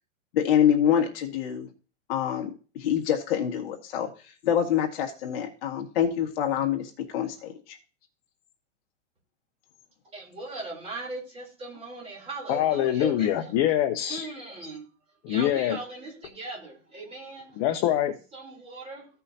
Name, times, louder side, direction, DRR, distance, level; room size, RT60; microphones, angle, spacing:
voice 1, 0.3-1.7 2.1-4.1 4.4-7.8, left 9 dB, 50° left, 1.8 m, -26 dB
voice 2, 10.1-13.5 14.1-14.8 15.3-17.6 18.3-19.1, right 2 dB, 15° right, 3.5 m, -39 dB
voice 3, 12.5-14.3 15.2-15.8 17.6-18.1, left 11 dB, 30° left, 0.7 m, -24 dB
15.0 x 5.6 x 2.8 m
hypercardioid pair, 150°, 38 cm